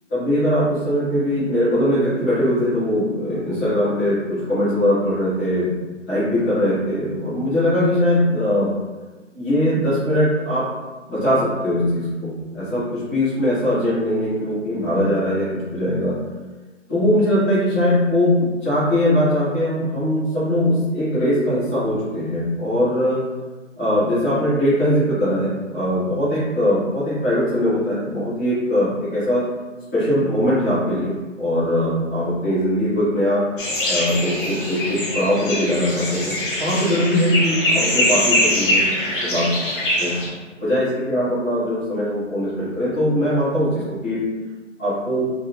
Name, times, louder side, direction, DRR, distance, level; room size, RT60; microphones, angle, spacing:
voice 1, 0.1-5.7 6.1-8.7 9.3-10.7 11.1-16.2 16.9-23.2 23.8-29.4 29.9-33.4 33.9-38.8 39.2-39.4 40.0-40.1 40.6-44.2 44.8-45.2, equal, 5° left, -17 dB, 0.5 m, -21 dB
sound 1, 33.6-40.3, left 1 dB, 45° left, 1.0 m, -22 dB
2.9 x 2.6 x 2.7 m, 1.3 s
figure-of-eight pair, 145°, 37 cm